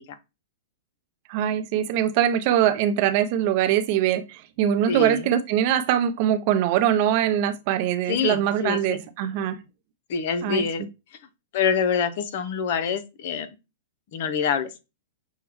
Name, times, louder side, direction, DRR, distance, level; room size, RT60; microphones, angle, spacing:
voice 1, 1.3-9.6 10.4-10.6, right 10 dB, 50° right, 0.6 m, -22 dB
voice 2, 4.9-5.2 8.1-9.0 10.1-10.9 11.5-13.5 14.1-14.7, left 7 dB, 60° left, 0.7 m, -25 dB
6.2 x 2.2 x 3.5 m
hypercardioid pair, 125°, 0 cm